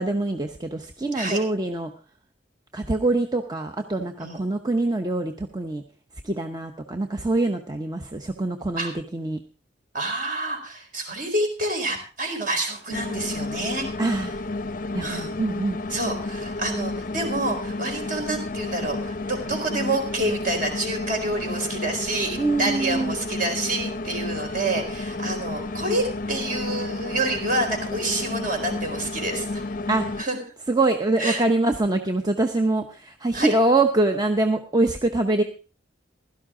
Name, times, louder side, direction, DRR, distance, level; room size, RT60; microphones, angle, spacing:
voice 1, 0.0-1.9 2.7-5.8 6.2-9.4 14.0-14.3 14.9-15.8 22.4-23.2 29.9-30.1 30.7-35.4, right 2 dB, 20° right, 5 dB, 0.8 m, -24 dB
voice 2, 9.9-13.9 15.0-15.3 15.9-29.6 30.2-30.4 31.2-31.4 33.3-33.5, right 2 dB, 45° right, 4 dB, 4.2 m, -28 dB
sound 1, 12.9-30.2, left 2 dB, 45° left, 0.6 m, -31 dB
16.0 x 12.5 x 3.7 m, 0.35 s
head